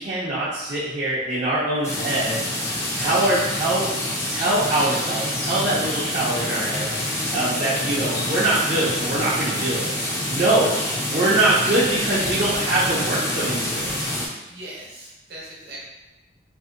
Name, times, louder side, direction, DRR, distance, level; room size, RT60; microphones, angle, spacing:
voice 1, 0.0-3.9 4.3-9.9 10.3-10.7 11.1-14.0, right 2 dB, 40° right, -10 dB, 0.5 m, -23 dB
Rain, 1.8-14.4, left 2 dB, 60° left, 0.5 m, -39 dB
sound 1, 1.8-14.3, left 1 dB, 15° left, 0.4 m, -27 dB
voice 2, 10.6-12.3 14.5-15.9, right 1 dB, 60° right, -4 dB, 0.9 m, -40 dB
2.6 x 2.5 x 2.5 m, 1.0 s
head